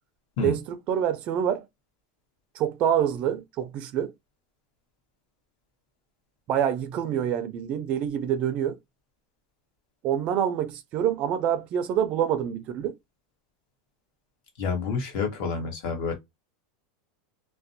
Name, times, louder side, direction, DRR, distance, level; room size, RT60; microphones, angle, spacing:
voice 1, 0.4-1.6 2.5-4.1 6.5-8.8 10.0-12.9, right 9 dB, 40° right, 0.4 m, -26 dB
voice 2, 14.6-16.1, left 4 dB, 50° left, 1.1 m, -28 dB
2.5 x 2.1 x 2.6 m
supercardioid pair, 150°, 3 cm